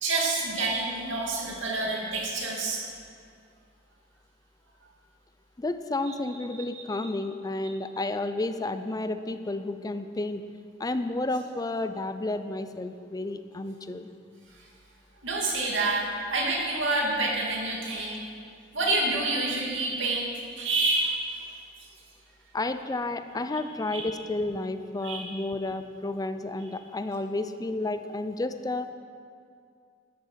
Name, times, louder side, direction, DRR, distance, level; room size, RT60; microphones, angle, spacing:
voice 1, 0.0-2.8 6.1-6.2 6.7-7.0 15.2-18.2 18.7-20.3 20.6-21.4 23.9-24.0 25.0-25.2, right 2 dB, 85° right, -2 dB, 2.6 m, -28 dB
voice 2, 5.6-10.4 10.8-14.1 22.5-28.9, left 2 dB, 20° left, 10 dB, 0.4 m, -31 dB
13.0 x 9.2 x 5.7 m, 2.3 s
head